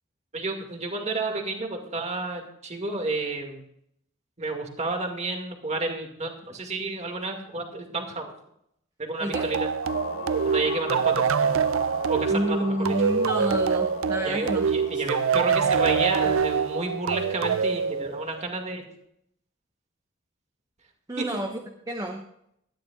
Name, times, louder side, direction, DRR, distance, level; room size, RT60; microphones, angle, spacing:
voice 1, 0.3-3.6 4.4-8.2 9.0-9.7 10.4-11.5 12.1-13.0 14.2-18.9 21.2-21.3, right 2 dB, 35° right, 3 dB, 2.2 m, -31 dB
sound 1, 9.3-18.6, right 6 dB, 75° right, 0.4 m, -25 dB
sound 2, 9.8-16.9, left 3 dB, 60° left, 3.6 m, -40 dB
voice 2, 12.3-14.7 14.9-15.0 21.1-21.5 21.9-22.2, equal, 20° right, 2 dB, 1.1 m, -29 dB
19.5 x 13.0 x 2.5 m, 0.74 s
head